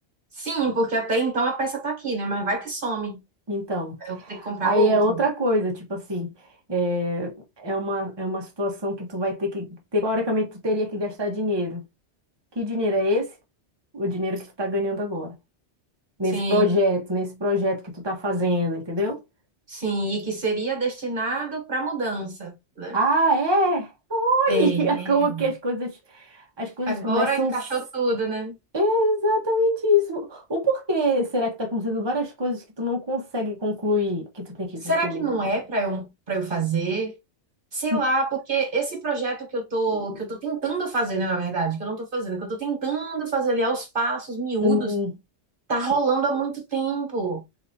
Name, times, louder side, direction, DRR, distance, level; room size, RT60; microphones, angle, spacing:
voice 1, 0.3-3.2 4.0-5.0 16.3-16.6 19.7-23.0 24.5-25.5 26.9-28.5 34.8-37.1 37.7-44.9 45.7-47.4, right 3 dB, 50° right, 1.4 m, -26 dB
voice 2, 3.5-6.3 6.7-9.7 9.9-11.8 12.5-13.3 13.9-15.3 16.2-19.2 22.9-27.5 28.7-35.2 37.9-38.0 39.9-40.0 44.6-45.1, equal, 25° right, 1.3 m, -24 dB
4.0 x 3.9 x 2.8 m
omnidirectional pair, 1.1 m